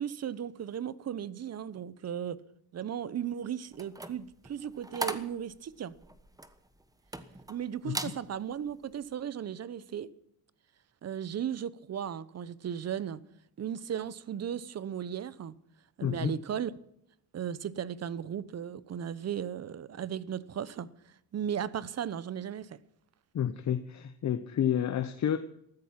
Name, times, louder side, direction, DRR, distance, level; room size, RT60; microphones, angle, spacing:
voice 1, 0.0-2.4 2.7-5.9 7.5-10.1 11.0-13.2 13.6-15.6 16.0-16.7 17.3-20.9 21.3-22.8, right 9 dB, 40° right, 0.9 m, -36 dB
sound 1, 3.7-7.6 7.9-8.2 8.7-8.9, right 2 dB, 10° right, 1.2 m, -39 dB
voice 2, 16.0-16.4 23.3-25.4, left 9 dB, 45° left, 0.9 m, -30 dB
14.5 x 13.5 x 5.9 m
cardioid pair, 110°, 40 cm